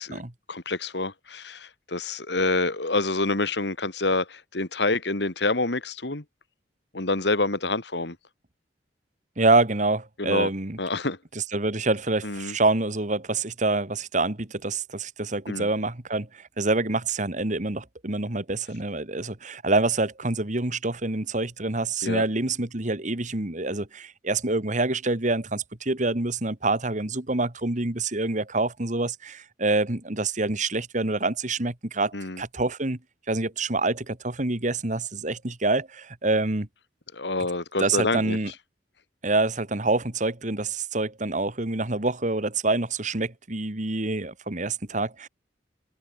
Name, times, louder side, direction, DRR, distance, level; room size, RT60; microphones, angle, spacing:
voice 1, 0.5-6.2 6.9-8.2 10.2-10.5 10.8-11.2 12.2-12.6 15.5-15.7 22.0-22.2 32.1-32.4 37.1-38.4, left 2 dB, 65° left, 2.3 m, -27 dB
voice 2, 9.4-10.8 11.4-33.0 33.3-36.7 37.8-38.5 39.2-45.3, right 2 dB, 45° right, 2.0 m, -26 dB
open air
head